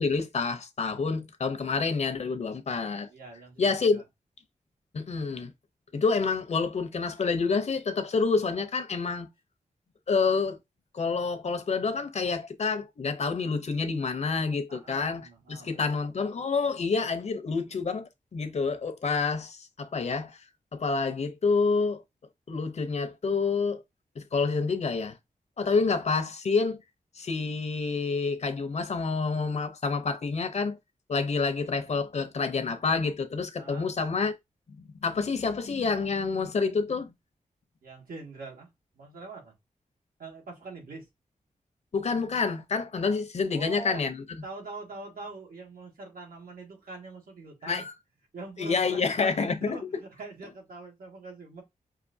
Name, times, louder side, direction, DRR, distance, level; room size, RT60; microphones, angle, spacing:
voice 1, 0.0-3.1 3.6-4.0 4.9-5.5 5.9-9.3 10.1-10.6 10.9-20.4 20.7-22.0 22.5-23.8 24.2-25.2 25.6-26.8 27.1-30.8 31.1-34.3 35.0-37.1 41.9-44.2 47.6-47.9 48.6-49.8, left 4 dB, 50° left, 0.7 m, -28 dB
voice 2, 3.1-4.0 5.9-6.0 14.7-16.2 33.6-34.0 37.8-38.7 38.9-39.5 40.2-41.1 43.5-44.1 44.4-47.8 48.3-51.6, right 3 dB, 85° right, 1.8 m, -43 dB
5.7 x 2.7 x 2.6 m
wide cardioid pair, 160°, 14 cm